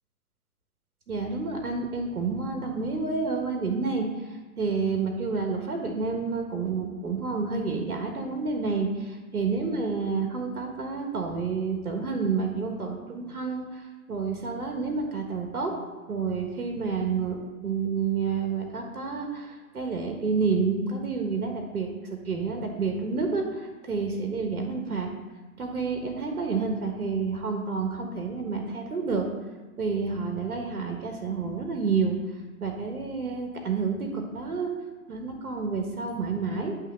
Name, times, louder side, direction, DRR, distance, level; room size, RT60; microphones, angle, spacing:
voice 1, 1.1-15.7 16.1-25.1 25.6-29.3 29.8-32.2 32.6-34.7 35.1-36.8, right 4 dB, 80° right, 3 dB, 1.5 m, -29 dB
8.9 x 3.1 x 6.2 m, 1.3 s
hypercardioid pair, 130°, 44 cm